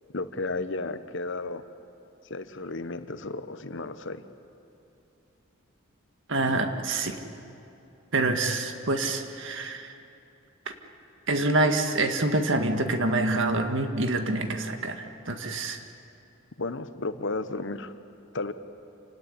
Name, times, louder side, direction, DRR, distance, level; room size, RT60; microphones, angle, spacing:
voice 1, 0.1-1.6 2.3-4.2 16.6-17.9 18.3-18.5, left 3 dB, 60° left, 11 dB, 1.1 m, -33 dB
voice 2, 6.3-7.2 8.1-10.0 10.7-10.8 11.3-15.8, right 2 dB, 65° right, 6 dB, 1.9 m, -26 dB
28.0 x 17.5 x 10.0 m, 2.9 s
head